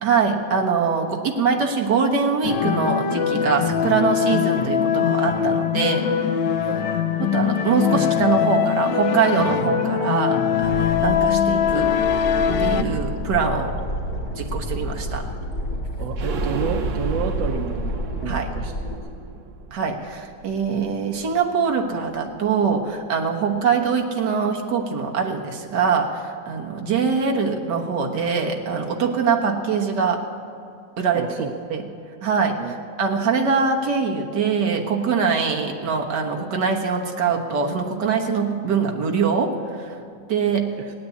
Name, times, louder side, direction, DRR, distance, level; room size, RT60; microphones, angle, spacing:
voice 1, 0.0-6.1 7.2-12.0 12.6-13.8 14.4-15.3 18.3-18.5 19.7-30.2 31.0-31.3 31.7-31.8 32.2-40.0 40.3-40.7, right 5 dB, 70° right, 1 dB, 1.9 m, -23 dB
sound 1, 2.4-12.8, left 8 dB, 80° left, 1.5 m, -22 dB
sound 2, 10.6-19.0, equal, 60° left, 3.0 m, -29 dB
voice 2, 16.0-18.7 31.1-31.5 32.6-32.7, right 7 dB, 90° right, 4 dB, 1.5 m, -30 dB
sound 3, 16.2-21.8 22.1-22.2 22.5-22.6, right 6 dB, 55° right, 1.0 m, -35 dB
17.0 x 9.5 x 8.3 m, 2.5 s
omnidirectional pair, 1.9 m